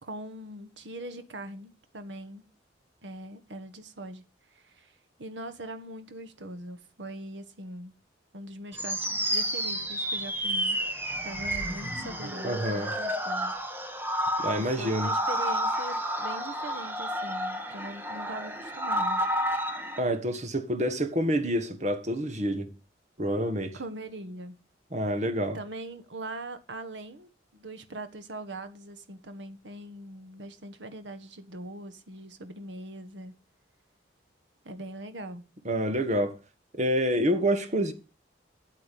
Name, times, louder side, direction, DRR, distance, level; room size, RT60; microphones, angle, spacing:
voice 1, 0.0-2.5 3.0-4.2 4.5-4.9 5.2-7.9 8.3-10.8 11.2-13.6 14.5-19.2 23.7-24.6 25.5-33.3 34.6-35.4, right 1 dB, 85° right, 1.4 m, -41 dB
sound 1, 8.7-20.0, equal, 10° right, 1.3 m, -30 dB
voice 2, 12.4-12.9 14.4-15.1 20.0-22.7 23.2-23.8 24.9-25.6 35.6-36.4 36.7-37.9, equal, 40° right, 1.4 m, -27 dB
8.7 x 8.1 x 5.2 m
head